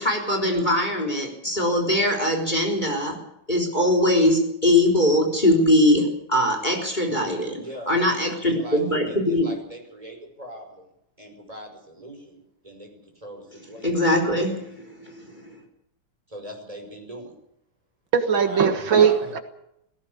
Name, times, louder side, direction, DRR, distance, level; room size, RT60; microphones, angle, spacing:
voice 1, 0.0-3.2 3.5-9.5 13.8-15.6, left 1 dB, 20° left, 4.1 m, -22 dB
voice 2, 7.6-8.8 9.1-10.8 11.2-12.9 13.2-13.9 16.3-17.4 18.4-19.2, right 1 dB, 20° right, 6.1 m, -40 dB
voice 3, 18.1-19.4, right 7 dB, 80° right, 2.4 m, -19 dB
18.0 x 17.0 x 8.6 m
omnidirectional pair, 2.1 m